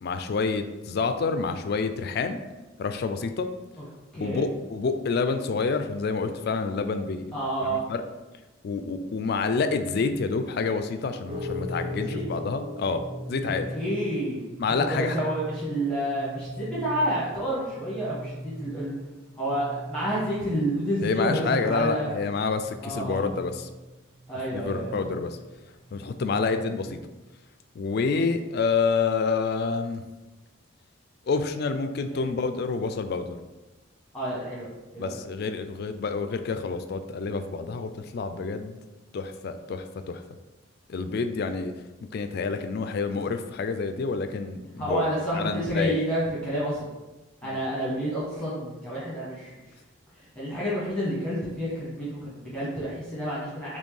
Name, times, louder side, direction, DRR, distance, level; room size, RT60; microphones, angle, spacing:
voice 1, 0.0-2.4 2.8-3.5 4.1-8.0 8.6-13.0 13.3-13.7 14.6-15.2 21.0-23.7 24.5-25.4 25.9-27.0 27.7-30.0 31.3-33.4 35.0-38.8 39.1-40.2 40.9-41.7 42.1-45.0 45.3-46.0 47.4-47.6, left 4 dB, 50° left, 8 dB, 0.3 m, -28 dB
voice 2, 7.3-7.8 12.1-12.2 13.7-14.4 14.9-18.9 19.4-22.1 22.8-23.2 24.3-25.0 32.1-32.3 34.1-34.7 34.9-35.1 44.8-46.9 47.4-49.6 50.2-53.8, equal, 5° left, -9 dB, 1.0 m, -29 dB
sound 1, 11.3-27.1, left 1 dB, 25° right, 0.6 m, -40 dB
4.2 x 3.1 x 3.2 m, 1.1 s
head